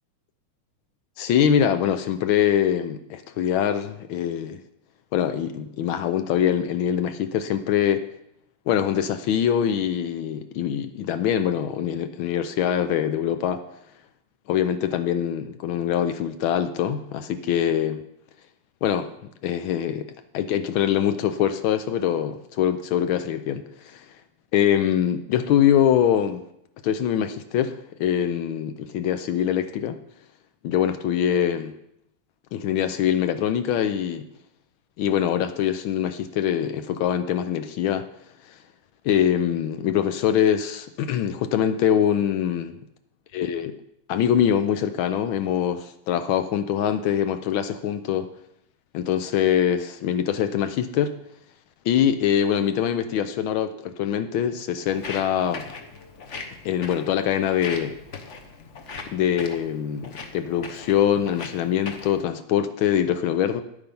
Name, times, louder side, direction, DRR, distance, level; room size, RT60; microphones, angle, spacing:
voice 1, 1.2-4.6 5.1-8.0 8.7-13.6 14.5-18.0 18.8-19.1 19.4-24.1 24.5-26.4 26.8-30.0 30.6-31.7 32.5-34.3 35.0-38.0 38.5-38.6 39.0-42.8 43.3-43.8 44.1-48.3 48.9-51.1 51.8-55.7 56.6-57.9 59.1-63.6, left 9 dB, 75° left, 9 dB, 1.4 m, -23 dB
Walk footsteps, 54.9-62.2, left 4 dB, 45° left, 1.1 m, -39 dB
10.0 x 8.9 x 5.4 m, 0.77 s
omnidirectional pair, 2.3 m